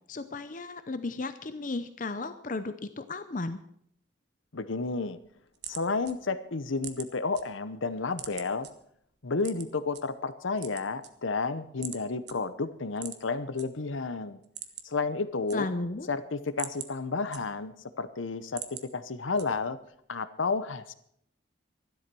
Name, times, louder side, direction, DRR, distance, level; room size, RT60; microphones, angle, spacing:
voice 1, 0.1-3.6 15.5-16.1, left 3 dB, 40° left, 11 dB, 0.6 m, -34 dB
voice 2, 4.5-5.2 5.7-8.7 9.2-14.4 14.8-15.7 16.1-19.8 20.1-20.9, left 4 dB, 85° left, 13 dB, 0.9 m, -31 dB
sound 1, 5.2-7.4 7.8-8.7 9.4-10.0 10.5-11.5 11.8-12.0 12.3-12.4 12.9-13.7 14.0-14.1 14.4-15.0 15.3-16.0 16.4-17.8 18.2-18.9 19.4-19.8, right 10 dB, 60° right, 1.2 m, -42 dB
13.5 x 12.0 x 6.1 m, 0.70 s
head